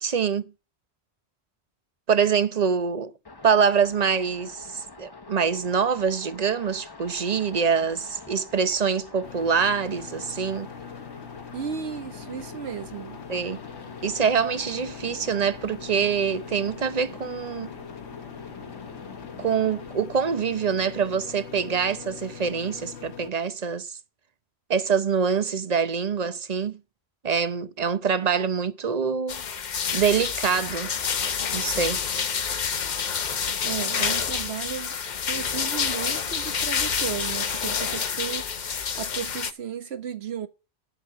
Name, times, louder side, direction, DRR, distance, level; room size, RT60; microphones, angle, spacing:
voice 1, 0.0-0.5 2.1-3.1 3.4-10.7 13.3-13.6 14.0-17.7 19.4-24.0 24.7-26.8 27.2-29.4 29.9-30.9 31.5-32.0, right 6 dB, 40° right, 0.9 m, -25 dB
sound 1, 3.3-19.9, left 4 dB, 25° left, 1.0 m, -45 dB
sound 2, 9.2-23.3, left 7 dB, 85° left, 1.2 m, -42 dB
voice 2, 11.5-13.2 33.6-38.5 38.9-40.5, right 8 dB, 75° right, 1.4 m, -34 dB
sound 3, 29.3-39.5, left 6 dB, 45° left, 0.8 m, -28 dB
10.5 x 7.2 x 8.1 m
omnidirectional pair, 1.1 m